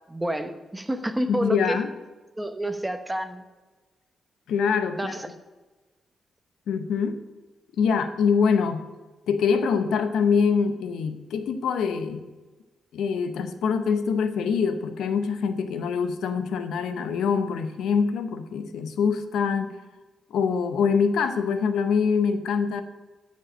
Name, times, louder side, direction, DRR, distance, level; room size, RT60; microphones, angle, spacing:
voice 1, 0.1-1.8 2.4-3.4 4.9-5.3, right 1 dB, 10° right, 9 dB, 0.9 m, -29 dB
voice 2, 1.3-1.9 4.5-5.1 6.7-7.2 7.8-8.9 9.3-12.2 12.9-19.7 20.3-22.8, left 6 dB, 90° left, 9 dB, 0.7 m, -24 dB
13.0 x 5.4 x 6.2 m, 1.2 s
cardioid pair, 80°, 0 cm